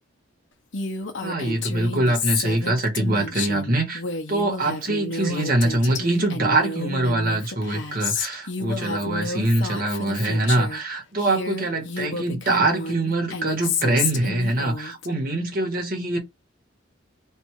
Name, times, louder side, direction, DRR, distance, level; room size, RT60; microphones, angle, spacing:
Female speech woman speaking, 0.7-10.8 11.2-15.1, left 4 dB, 65° left, 1.1 m, -30 dB
voice 1, 1.2-4.0 4.3-16.2, right 2 dB, 45° right, 1.6 m, -23 dB
3.5 x 2.7 x 4.6 m
head